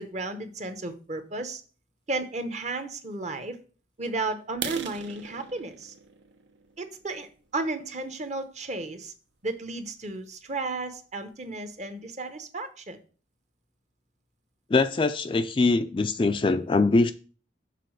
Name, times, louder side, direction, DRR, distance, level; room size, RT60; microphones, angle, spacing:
voice 1, 0.0-1.6 2.1-3.6 4.0-5.9 6.8-9.1 9.4-13.0, right 2 dB, 35° right, 0.8 m, -33 dB
sound 1, 4.5-8.3 8.8-9.0 9.4-9.5 10.0-10.1 10.4-10.5 11.0-11.1 11.3-11.8, right 6 dB, 70° right, 0.8 m, -40 dB
voice 2, 14.7-17.1, left 3 dB, 25° left, 0.3 m, -22 dB
6.7 x 4.0 x 6.4 m
head